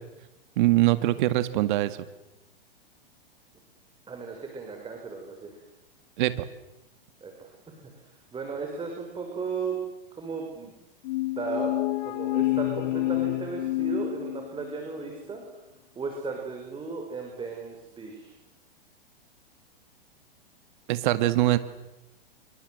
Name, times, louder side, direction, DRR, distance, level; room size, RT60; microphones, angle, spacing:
voice 1, 0.6-2.0 6.2-6.5 20.9-21.6, right 16 dB, 55° right, 12 dB, 2.0 m, -23 dB
voice 2, 4.1-5.6 7.2-7.5 8.0-9.8 10.1-10.7 11.4-15.4 16.0-18.3, right 4 dB, 15° right, 2 dB, 6.2 m, -35 dB
sound 1, 11.0-14.8, left 18 dB, 55° left, 1.7 m, -28 dB
28.0 x 25.0 x 8.1 m, 0.96 s
hypercardioid pair, 115°, 30 cm